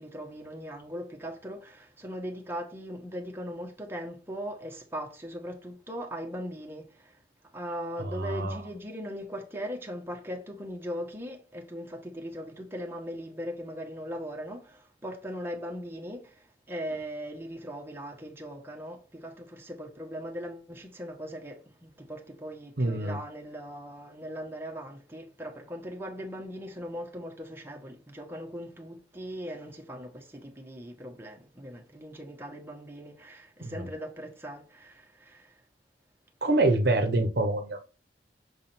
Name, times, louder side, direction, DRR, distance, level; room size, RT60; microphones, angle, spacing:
voice 1, 0.0-7.2 7.5-35.5, equal, 15° right, 1.3 m, -39 dB
voice 2, 8.2-8.6 22.8-23.2 33.6-33.8 36.4-37.8, right 2 dB, 65° right, 1.0 m, -26 dB
6.4 x 3.6 x 4.4 m
head